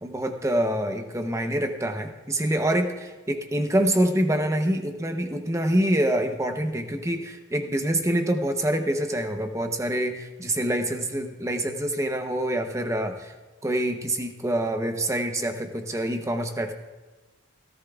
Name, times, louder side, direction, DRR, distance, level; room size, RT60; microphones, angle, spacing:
voice 1, 0.0-13.3 13.6-16.7, right 1 dB, 15° right, 6 dB, 0.7 m, -26 dB
17.0 x 15.0 x 2.4 m, 1.2 s
head